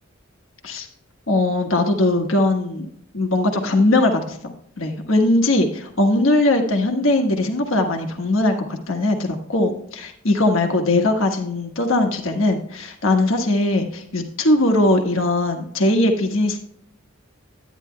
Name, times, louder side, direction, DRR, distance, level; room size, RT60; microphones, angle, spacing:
voice 1, 1.3-2.9 3.1-16.6, left 2 dB, 75° left, 3 dB, 1.4 m, -20 dB
11.5 x 9.7 x 2.2 m, 0.67 s
head